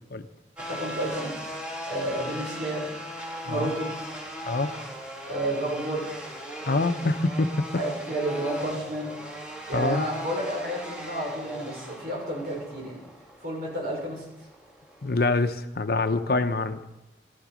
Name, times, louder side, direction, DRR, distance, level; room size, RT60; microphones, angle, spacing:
sound 1, 0.6-15.4, equal, 5° right, 3.1 m, -39 dB
voice 1, 0.7-1.3 1.9-2.9 3.5-3.9 5.3-6.1 7.7-9.2 9.7-13.0 13.4-14.2, right 1 dB, 55° right, -2 dB, 5.8 m, -30 dB
voice 2, 6.7-7.7 9.7-10.0 15.0-16.9, left 3 dB, 60° left, 9 dB, 0.8 m, -25 dB
15.0 x 13.0 x 5.1 m, 0.93 s
head